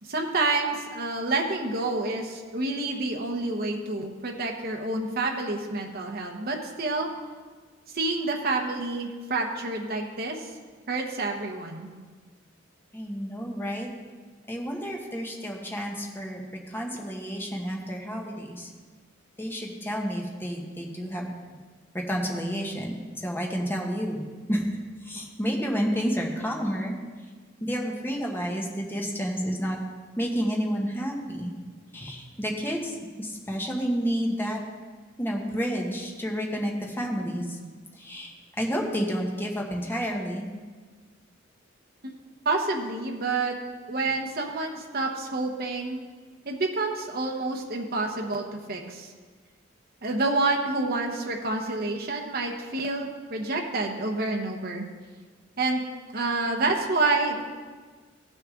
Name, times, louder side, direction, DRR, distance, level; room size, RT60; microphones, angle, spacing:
voice 1, 0.0-7.1 7.9-10.5 10.9-11.9 42.0-42.1 42.4-43.5 43.9-46.0 46.4-49.1 50.0-54.9 55.6-55.8 56.1-57.4, right 3 dB, 50° right, 1 dB, 1.1 m, -28 dB
voice 2, 12.9-13.9 14.5-16.4 16.7-18.7 19.4-21.3 21.9-24.2 24.5-24.7 25.0-27.0 27.6-29.8 30.2-31.5 31.9-34.6 35.2-37.6 38.0-40.4, equal, 10° left, -1 dB, 1.3 m, -30 dB
15.5 x 6.4 x 3.8 m, 1.4 s
head